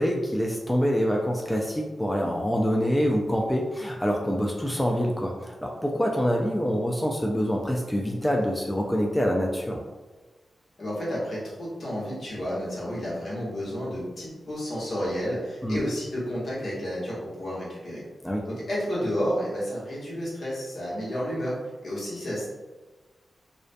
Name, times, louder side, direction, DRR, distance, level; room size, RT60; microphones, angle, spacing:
voice 1, 0.0-9.8 15.6-15.8 18.2-18.5, equal, 10° left, 0 dB, 0.3 m, -26 dB
voice 2, 10.8-18.0 18.5-22.5, equal, 70° left, -7 dB, 1.0 m, -31 dB
2.4 x 2.1 x 2.5 m, 1.2 s
cardioid pair, 55°, 0 cm